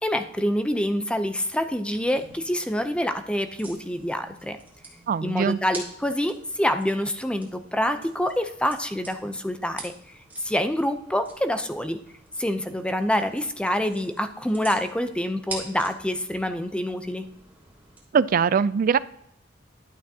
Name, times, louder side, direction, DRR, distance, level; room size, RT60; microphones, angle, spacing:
voice 1, 0.0-4.6 5.2-9.9 10.4-12.0 12.4-17.3, equal, 5° left, 8 dB, 0.6 m, -26 dB
sound 1, 1.9-18.0, right 2 dB, 10° right, 2.9 m, -46 dB
voice 2, 5.1-5.6 18.1-19.0, right 6 dB, 45° right, 17 dB, 0.3 m, -21 dB
12.0 x 8.3 x 2.8 m, 0.75 s
head